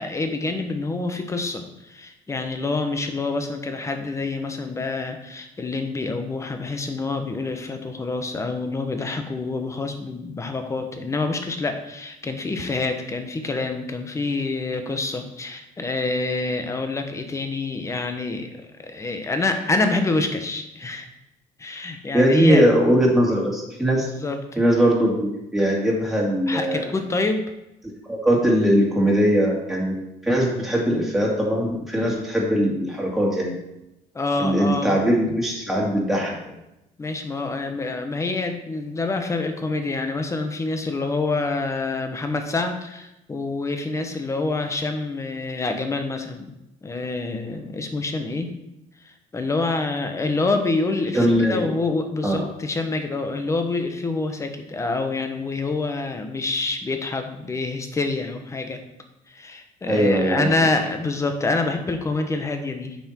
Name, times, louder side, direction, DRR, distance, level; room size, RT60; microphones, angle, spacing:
voice 1, 0.0-21.1 21.6-22.6 24.2-24.6 26.5-27.4 34.1-35.0 37.0-46.5 46.8-48.5 49.3-58.8 59.3-63.0, left 3 dB, 20° left, 6 dB, 1.2 m, -27 dB
voice 2, 22.1-24.1 24.6-26.9 28.1-29.9 30.2-33.5 34.4-36.3 51.1-51.7 52.2-52.4 59.9-60.5, equal, ahead, -3 dB, 2.5 m, -20 dB
8.6 x 6.0 x 4.5 m, 0.90 s
cardioid pair, 115°, 14 cm